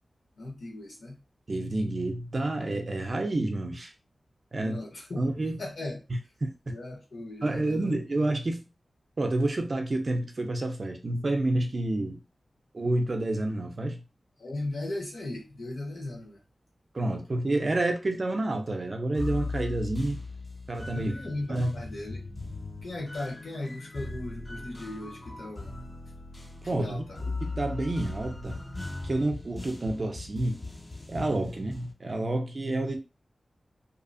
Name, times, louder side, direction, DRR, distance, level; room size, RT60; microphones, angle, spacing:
voice 1, 0.4-1.2 4.6-5.2 5.6-6.0 6.7-8.2 14.4-16.4 20.9-22.2 22.8-25.7 26.6-27.2, left 2 dB, 70° left, 1.0 m, -37 dB
voice 2, 1.5-3.9 4.5-4.8 5.2-5.6 6.4-6.5 7.4-8.7 9.2-12.2 12.7-14.0 16.9-20.2 20.7-21.1 21.5-21.7 26.6-27.0 27.4-28.6 29.0-30.6 31.1-33.0, right 2 dB, 45° right, 0.5 m, -29 dB
sound 1, 19.2-31.9, left 3 dB, 20° left, 0.4 m, -38 dB
2.7 x 2.1 x 2.6 m
wide cardioid pair, 100°, 0 cm